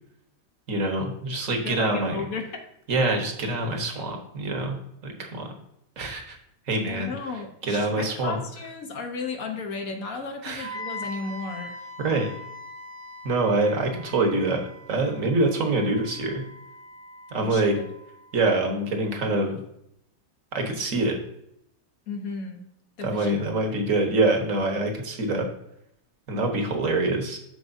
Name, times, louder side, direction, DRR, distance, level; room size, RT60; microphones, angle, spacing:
voice 1, 0.7-2.2 2.9-5.5 6.0-6.4 6.7-7.1 7.7-8.4 10.4-10.8 12.0-12.3 13.2-16.4 17.3-17.8 18.3-19.6 20.5-21.2 23.0-25.5 26.3-27.4, right 2 dB, 50° right, 4 dB, 1.5 m, -25 dB
voice 2, 1.6-2.6 6.8-11.9 17.4-17.8 22.1-22.6 23.0-23.4 23.7-23.9, left 4 dB, 55° left, 4 dB, 1.4 m, -34 dB
Wind instrument woodwind instrument, 10.6-18.5, left 1 dB, 75° left, 2.1 m, -42 dB
13.0 x 4.7 x 2.7 m, 0.78 s
omnidirectional pair, 1.9 m